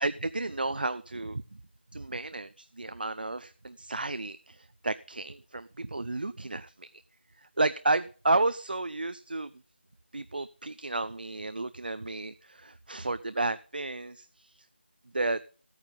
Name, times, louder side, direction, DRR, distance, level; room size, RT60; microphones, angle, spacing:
voice 1, 0.0-1.6 1.9-6.9 7.4-9.5 10.1-14.7 15.1-15.4, right 2 dB, 50° right, 14 dB, 0.4 m, -32 dB
13.5 x 8.9 x 3.8 m, 0.39 s
figure-of-eight pair, 180°, 6 cm